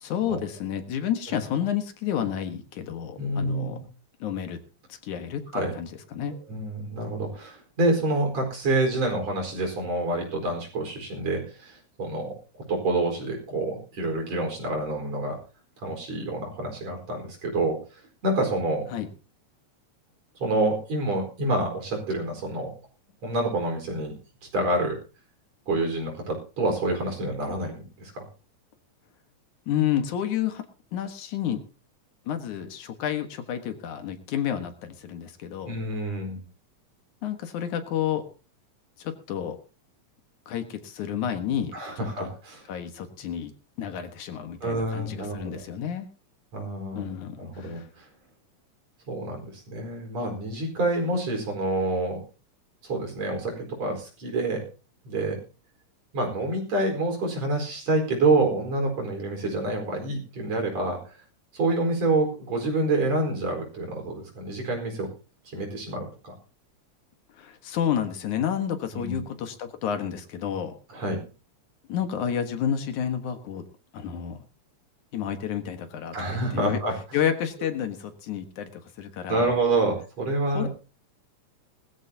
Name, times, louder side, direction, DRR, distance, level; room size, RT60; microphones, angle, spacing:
voice 1, 0.0-3.8 4.2-4.6 5.0-6.3 18.9-19.1 29.7-30.6 30.9-31.6 32.3-35.7 37.2-38.2 39.0-39.6 40.5-41.7 42.2-42.3 42.7-43.5 43.8-46.1 46.9-47.9 67.4-70.7 71.9-73.6 73.9-74.4 75.1-76.8 77.1-78.7 79.0-79.5 80.5-80.7, left 9 dB, 80° left, 7 dB, 3.0 m, -30 dB
voice 2, 3.2-3.8 5.5-5.7 6.5-12.3 12.7-15.4 15.8-17.8 18.2-18.9 20.4-22.7 23.2-24.2 24.5-25.0 25.7-28.2 35.7-36.4 41.7-42.7 44.6-45.6 46.5-47.1 47.4-48.1 49.1-52.2 52.8-54.6 55.1-55.4 56.1-61.0 61.5-65.1 65.5-66.3 68.9-69.2 70.9-71.2 76.1-76.9 79.3-80.7, right 2 dB, 60° right, 2 dB, 5.8 m, -27 dB
20.0 x 14.0 x 2.8 m, 0.33 s
omnidirectional pair, 3.4 m